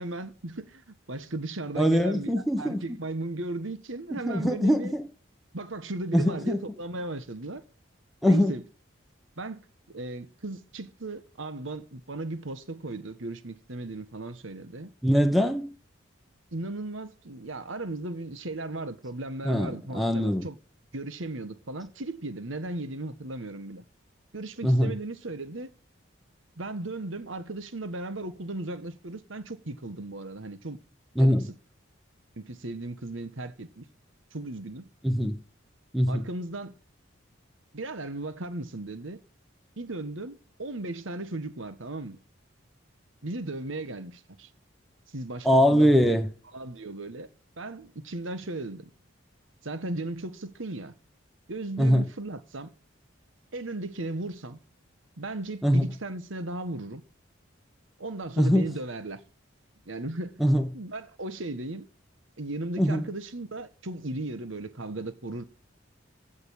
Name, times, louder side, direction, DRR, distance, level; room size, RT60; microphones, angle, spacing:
voice 1, 0.0-2.3 2.6-4.9 5.5-7.6 8.2-8.6 9.4-9.6 9.9-14.9 16.5-20.6 20.9-23.8 24.3-25.7 26.6-30.8 31.2-31.5 32.4-33.8 34.3-34.9 36.1-36.8 37.7-39.2 39.8-42.2 43.2-44.5 45.1-46.1 46.5-47.3 47.6-48.9 49.6-50.9 51.5-52.7 53.5-54.6 55.2-57.0 58.0-59.2 59.9-60.4 60.7-61.9 62.4-65.4, right 2 dB, 75° right, 1.4 m, -36 dB
voice 2, 1.8-2.8 4.2-5.0 6.1-6.6 8.2-8.5 15.0-15.7 19.4-20.4 24.6-24.9 31.2-31.5 35.0-35.4 35.9-36.2 45.4-46.3 51.8-52.0 55.6-55.8 58.4-58.7 60.4-60.6 62.8-63.0, equal, ahead, 1.0 m, -22 dB
15.5 x 5.4 x 8.2 m
head